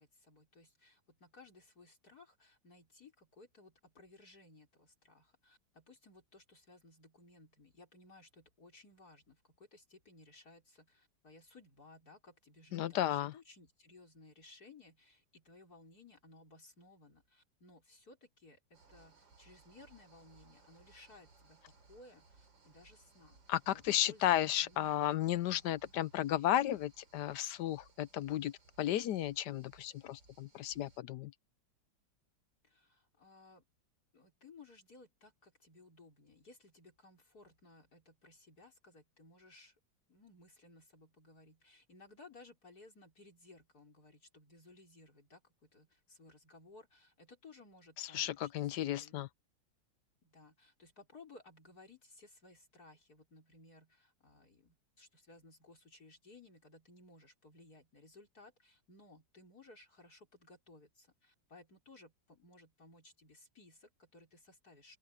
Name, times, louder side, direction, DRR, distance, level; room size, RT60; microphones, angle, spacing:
voice 1, 0.0-23.4 23.7-25.0 25.7-25.9 32.6-33.6 34.1-39.8 40.1-49.3 50.2-65.0, left 2 dB, 50° left, 5.2 m, -60 dB
voice 2, 12.7-13.3 23.5-31.3 48.0-49.3, left 12 dB, 70° left, 1.1 m, -34 dB
sound 1, 18.7-31.0, right 3 dB, 75° right, 4.4 m, -65 dB
open air
omnidirectional pair, 2.0 m